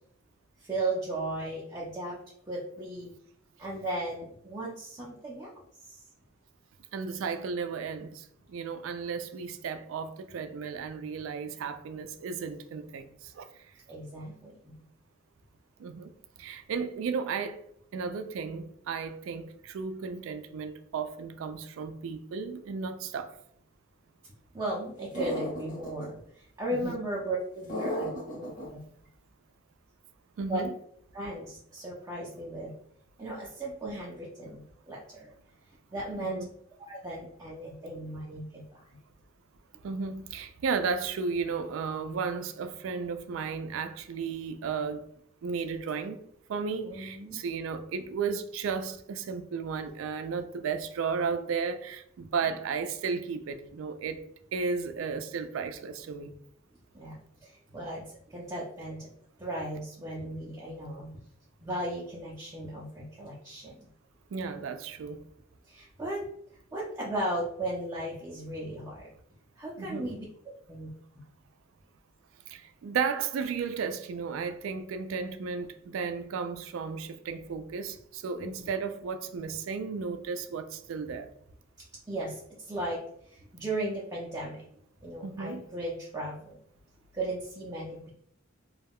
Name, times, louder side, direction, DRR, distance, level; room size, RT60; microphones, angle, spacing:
voice 1, 0.6-2.2 2.5-3.1 3.6-5.5 5.8-6.0 13.9-14.8 24.5-28.8 30.5-30.6 31.1-32.7 33.2-35.3 35.9-36.4 36.9-38.8 46.8-47.4 56.9-59.1 59.4-61.1 61.6-63.8 65.7-66.3 66.7-69.1 69.6-70.9 78.3-78.7 82.1-84.6 85.0-86.6 87.1-88.1, right 1 dB, 15° right, 0.5 m, -36 dB
voice 2, 6.9-13.6 15.8-16.1 16.4-17.6 17.9-23.4 26.7-27.0 30.4-30.7 36.2-36.5 39.8-45.0 45.4-46.2 46.5-54.2 54.5-56.3 64.3-65.2 69.8-70.1 72.5-81.3 85.2-85.6, right 5 dB, 75° right, 0.3 m, -34 dB
sound 1, 25.1-26.1 27.7-28.7, equal, 40° left, 1.0 m, -34 dB
2.3 x 2.1 x 3.4 m
head